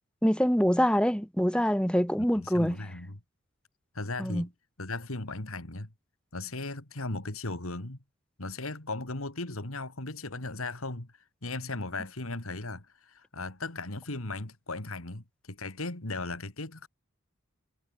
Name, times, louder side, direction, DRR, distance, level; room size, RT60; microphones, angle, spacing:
voice 1, 0.2-2.8 4.2-4.5, equal, 5° left, 3.1 m, -25 dB
voice 2, 2.4-3.2 3.9-4.5 4.8-5.9 6.3-8.0 8.4-11.1 11.4-16.9, left 2 dB, 85° left, 2.8 m, -37 dB
head